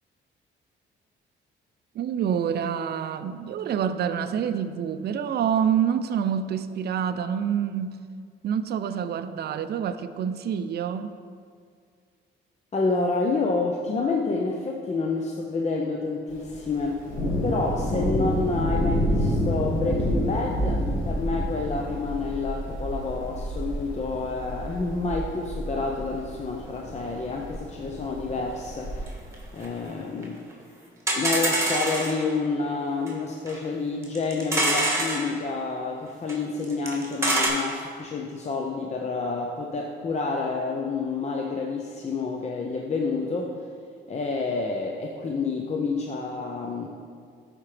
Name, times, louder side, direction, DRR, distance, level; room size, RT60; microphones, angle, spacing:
voice 1, 1.9-8.0 8.4-11.1, right 8 dB, 55° right, 11 dB, 0.5 m, -27 dB
voice 2, 12.7-17.0 17.4-29.1 29.5-30.4 31.2-43.7 44.1-46.9, left 3 dB, 35° left, 0 dB, 0.7 m, -29 dB
Thunder, 16.3-29.0, equal, 85° left, 2.0 m, -29 dB
sound 1, 29.1-29.2 29.3-29.4 29.6-29.7 30.2-30.3 30.5-30.6 31.1-32.2 33.1-33.2 33.5-33.6 34.0-35.2 36.3-36.4 36.6-37.5, right 1 dB, 15° right, 2.0 m, -25 dB
12.5 x 5.0 x 3.3 m, 2.1 s
cardioid pair, 90°, 20 cm